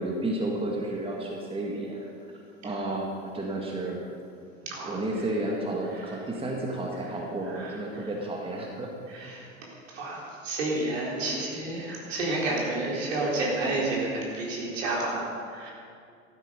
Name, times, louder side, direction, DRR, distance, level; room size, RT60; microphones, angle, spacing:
voice 1, 0.0-2.1 2.6-4.1 4.8-8.9 9.2-9.3, right 2 dB, 15° right, -1 dB, 1.9 m, -32 dB
voice 2, 4.6-5.0 5.9-6.1 7.5-8.1 9.1-15.7, right 2 dB, 65° right, -3 dB, 4.2 m, -31 dB
15.0 x 12.5 x 5.2 m, 2.3 s
figure-of-eight pair, 80°, 41 cm